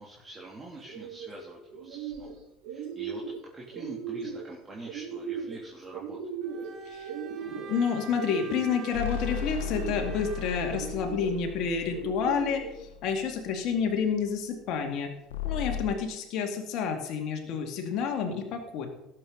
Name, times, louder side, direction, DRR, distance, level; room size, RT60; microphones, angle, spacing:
voice 1, 0.0-2.3 2.7-3.2 3.5-6.4, right 2 dB, 25° right, -4 dB, 2.9 m, -45 dB
sound 1, 0.8-1.3 1.7-2.3 2.6-3.4 3.7-4.4 4.8-5.6 5.9-6.7 7.0-7.8 8.2-8.9 9.4-10.1 10.7-11.3 11.9-12.7, right 7 dB, 65° right, 3.4 m, -38 dB
Bowed string instrument, 6.4-10.9, right 6 dB, 45° right, 1.8 m, -45 dB
voice 2, 7.4-15.1 15.4-18.9, left 6 dB, 55° left, 3 dB, 2.3 m, -29 dB
sound 2, 8.9-13.4 15.3-15.8, left 8 dB, 75° left, 0.9 m, -36 dB
17.5 x 7.8 x 4.0 m, 0.87 s
hypercardioid pair, 70°, 0 cm